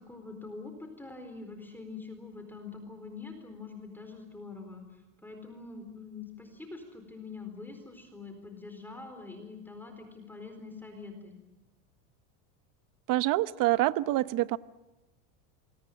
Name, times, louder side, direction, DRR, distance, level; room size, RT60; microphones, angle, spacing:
voice 1, 0.0-11.4, left 4 dB, 5° left, 5 dB, 4.2 m, -45 dB
voice 2, 13.1-14.6, right 16 dB, 45° right, 16 dB, 0.9 m, -26 dB
27.0 x 23.0 x 7.6 m, 1.0 s
supercardioid pair, 135°, 45 cm